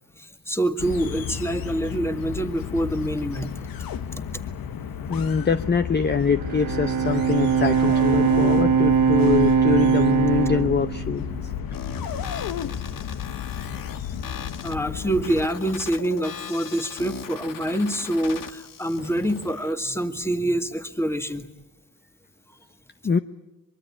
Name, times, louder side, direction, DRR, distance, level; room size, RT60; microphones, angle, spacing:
voice 1, 0.2-3.5 14.6-21.5, right 1 dB, 5° left, 8 dB, 2.0 m, -26 dB
sound 1, 0.8-15.5, left 8 dB, 90° left, 1.3 m, -32 dB
voice 2, 5.1-11.3 23.0-23.2, left 5 dB, 30° left, 10 dB, 0.8 m, -23 dB
Bowed string instrument, 6.3-11.7, right 7 dB, 75° right, 1.6 m, -21 dB
sound 2, 11.7-19.7, left 7 dB, 70° left, 1.6 m, -39 dB
24.0 x 23.0 x 8.8 m, 1.1 s
cardioid pair, 105°, 34 cm